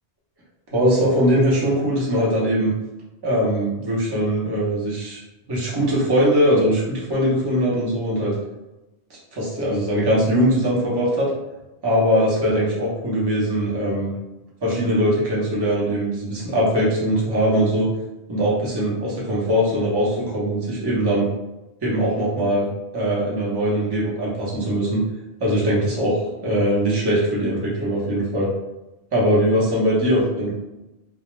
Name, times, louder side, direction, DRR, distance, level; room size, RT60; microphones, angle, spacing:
voice 1, 0.7-2.7 3.2-5.2 5.5-8.3 9.3-11.3 11.8-14.1 14.6-17.9 18.3-21.3 21.8-22.7 22.9-25.0 25.4-28.5 29.1-30.5, equal, 25° right, -6 dB, 0.7 m, -21 dB
2.3 x 2.1 x 3.1 m, 1.0 s
omnidirectional pair, 1.2 m